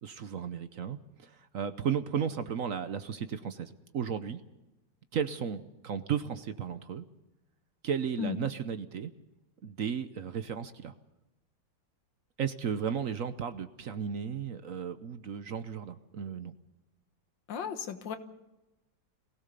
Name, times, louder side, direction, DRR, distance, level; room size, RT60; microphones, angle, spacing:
voice 1, 0.0-4.4 5.1-7.0 7.8-9.1 9.6-10.9 12.4-16.5, right 7 dB, 55° right, 11 dB, 1.1 m, -34 dB
voice 2, 17.5-18.2, left 7 dB, 85° left, 9 dB, 2.0 m, -35 dB
23.0 x 17.0 x 6.8 m, 1.0 s
omnidirectional pair, 2.0 m